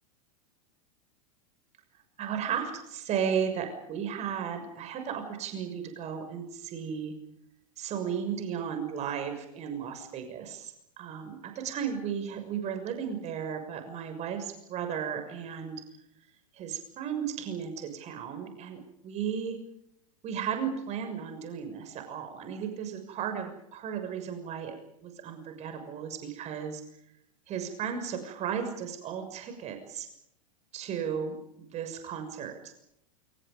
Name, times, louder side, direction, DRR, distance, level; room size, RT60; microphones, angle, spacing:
voice 1, 2.2-7.1 7.8-15.8 16.5-19.6 20.2-24.8 25.0-26.8 27.5-30.1 30.7-32.7, right 7 dB, 40° right, 6 dB, 6.6 m, -35 dB
28.5 x 27.0 x 5.4 m, 0.79 s
hypercardioid pair, 95°, 18 cm